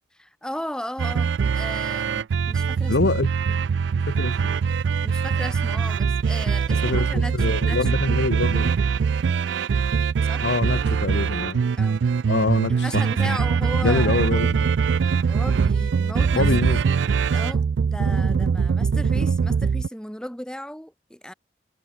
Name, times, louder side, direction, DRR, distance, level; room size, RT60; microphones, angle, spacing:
voice 1, 0.2-3.0 3.5-3.6 5.0-8.0 10.2-10.5 11.7-12.0 12.7-14.4 15.3-16.5 17.3-21.3, equal, 5° left, 3.5 m, -36 dB
sound 1, 1.0-19.9, right 6 dB, 85° right, 0.4 m, -22 dB
voice 2, 2.9-3.3 4.1-4.5 6.8-8.7 10.4-11.6 12.3-13.0 13.8-14.7 16.4-16.8, left 3 dB, 75° left, 0.8 m, -24 dB
head